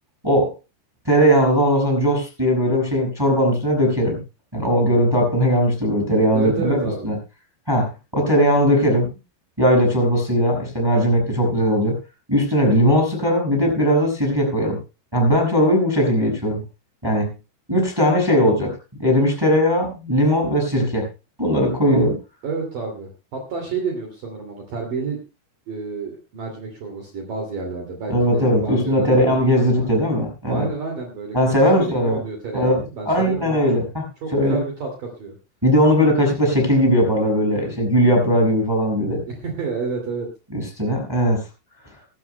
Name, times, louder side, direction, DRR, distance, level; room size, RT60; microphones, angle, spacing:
voice 1, 1.0-4.2 4.5-7.1 7.7-9.1 9.6-12.0 12.3-14.8 15.1-16.6 17.0-17.3 17.7-18.7 19.0-21.1 21.4-22.1 28.1-30.7 31.3-32.2 32.5-34.0 34.3-34.6 35.6-39.2 40.5-41.5, equal, 5° right, 0 dB, 5.3 m, -19 dB
voice 2, 6.3-7.1 22.4-25.2 25.7-30.0 30.5-33.6 34.2-35.3 39.3-40.3, right 4 dB, 50° right, 2 dB, 3.5 m, -30 dB
24.0 x 13.0 x 2.2 m, 0.30 s
omnidirectional pair, 5.8 m